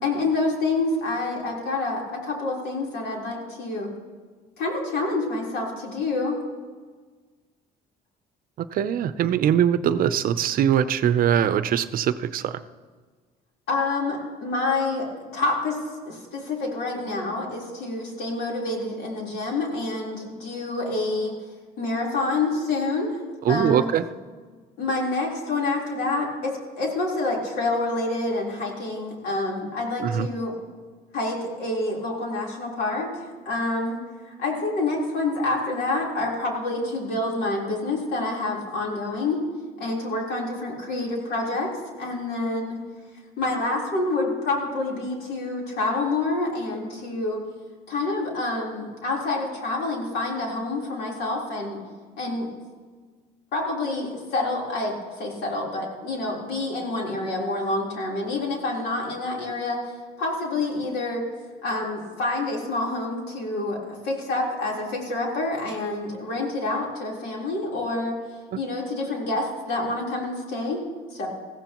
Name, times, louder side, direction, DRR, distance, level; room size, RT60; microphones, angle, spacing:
voice 1, 0.0-3.9 4.6-6.4 13.7-15.8 16.1-21.3 21.8-23.1 23.5-23.9 24.8-30.5 31.1-33.1 33.5-39.4 39.8-42.8 43.4-47.4 47.9-51.8 52.2-52.5 53.5-61.2 61.6-68.2 68.6-70.8 71.1-71.3, left 2 dB, 75° left, -2 dB, 3.9 m, -27 dB
voice 2, 8.6-12.6 23.4-24.0 30.0-30.3, right 9 dB, 60° right, 13 dB, 0.6 m, -22 dB
20.5 x 15.5 x 3.0 m, 1.5 s
cardioid pair, 110°, 17 cm